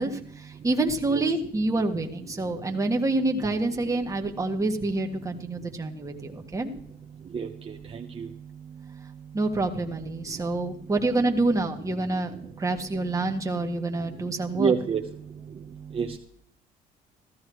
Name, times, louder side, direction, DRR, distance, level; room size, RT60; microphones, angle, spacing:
voice 1, 0.0-6.7 9.3-14.7, right 2 dB, 20° right, 2 dB, 1.8 m, -27 dB
voice 2, 7.3-8.3 14.6-15.0 15.9-16.2, right 6 dB, 35° right, 2 dB, 1.0 m, -27 dB
15.5 x 13.5 x 3.1 m, 0.64 s
cardioid pair, 110°, 17 cm